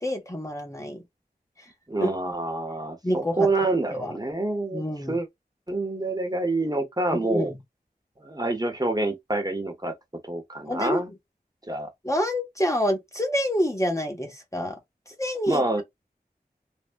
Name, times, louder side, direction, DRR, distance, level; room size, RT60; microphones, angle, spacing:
voice 1, 0.0-1.0 1.6-1.7 2.0-2.1 3.0-3.5 3.9-4.1 4.7-5.2 7.1-7.6 10.7-11.0 12.0-14.8 15.1-15.6, equal, 20° left, 0.8 m, -27 dB
voice 2, 1.9-4.8 5.1-5.3 5.7-7.5 8.2-9.9 10.2-11.1 11.7-11.9 15.5-15.8, right 2 dB, 25° right, 0.9 m, -27 dB
3.3 x 2.1 x 2.5 m
wide cardioid pair, 45°, 16 cm